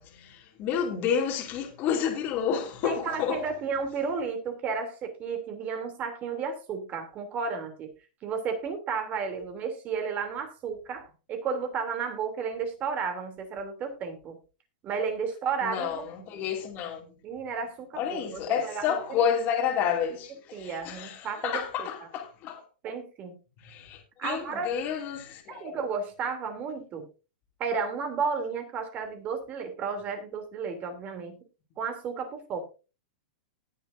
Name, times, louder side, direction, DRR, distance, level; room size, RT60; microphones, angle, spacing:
voice 1, 0.0-3.4 15.6-17.1 18.0-22.6 23.6-25.7, left 8 dB, 35° left, 2.5 m, -30 dB
voice 2, 2.8-7.9 8.2-14.4 14.8-16.1 16.3-16.4 17.2-19.2 20.5-21.9 22.8-23.3 24.2-24.7 25.5-27.1 27.6-31.4 31.8-32.6, right 5 dB, 30° right, 2.9 m, -33 dB
19.5 x 6.8 x 2.6 m
hypercardioid pair, 140°, 5 cm